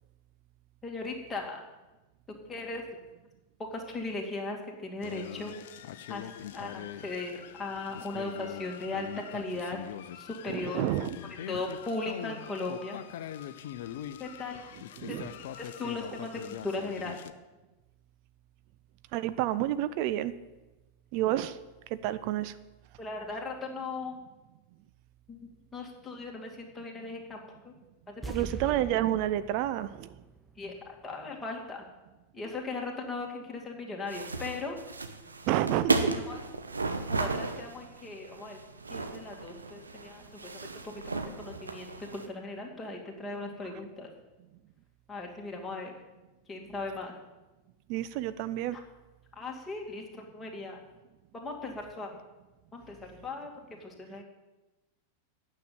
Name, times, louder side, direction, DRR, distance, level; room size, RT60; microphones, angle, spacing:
voice 1, 0.8-1.6 2.3-3.0 3.7-5.5 6.1-9.8 10.2-10.8 11.5-13.0 14.2-14.6 15.1-15.2 15.6-17.2 23.0-24.2 25.3-27.7 28.1-28.3 30.6-31.9 32.3-34.8 35.5-35.6 36.3-36.4 37.1-38.6 38.9-44.1 45.1-45.9 46.5-47.2 48.7-48.8 49.3-50.8 51.3-52.2 52.7-53.5 53.8-54.2, left 3 dB, 15° left, -1 dB, 2.3 m, -38 dB
sound 1, 5.0-17.3, left 10 dB, 55° left, 0.6 m, -42 dB
voice 2, 10.5-11.2 15.0-15.3 19.1-20.3 21.1-21.6 21.9-22.6 28.3-30.2 35.5-36.1 47.9-48.8, right 13 dB, 45° right, 13 dB, 0.5 m, -29 dB
sound 2, 28.2-31.4 31.7-31.8, right 3 dB, 5° right, 0.8 m, -43 dB
sound 3, 34.1-42.3, right 3 dB, 75° right, 0.8 m, -34 dB
9.3 x 6.7 x 8.8 m, 1.1 s
figure-of-eight pair, 90°, 0 cm